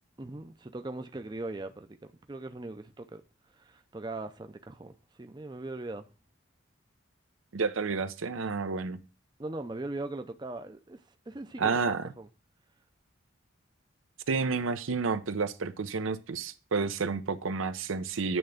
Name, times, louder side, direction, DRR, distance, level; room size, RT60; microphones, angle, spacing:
voice 1, 0.2-3.2 3.5-6.1 9.4-12.3, right 2 dB, 20° right, 0.5 m, -40 dB
voice 2, 7.5-9.0 11.6-12.1 14.3-18.4, right 4 dB, 85° right, 0.6 m, -30 dB
8.8 x 3.4 x 6.3 m
head